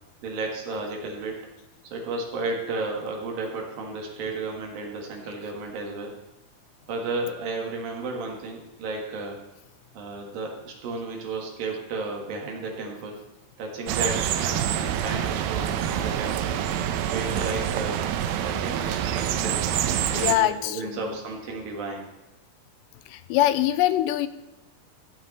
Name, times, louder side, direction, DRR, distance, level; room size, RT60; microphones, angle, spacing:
voice 1, 0.2-1.5 1.9-6.2 6.9-9.4 9.9-13.2 13.6-16.6 17.1-18.1 18.4-19.6 19.9-22.1, right 3 dB, 60° right, 0 dB, 3.2 m, -33 dB
sound 1, 13.9-20.3, right 10 dB, 80° right, 2.2 m, -26 dB
voice 2, 20.1-21.2 23.1-24.3, left 13 dB, 90° left, 13 dB, 2.8 m, -23 dB
15.0 x 8.7 x 4.1 m, 1.1 s
omnidirectional pair, 4.9 m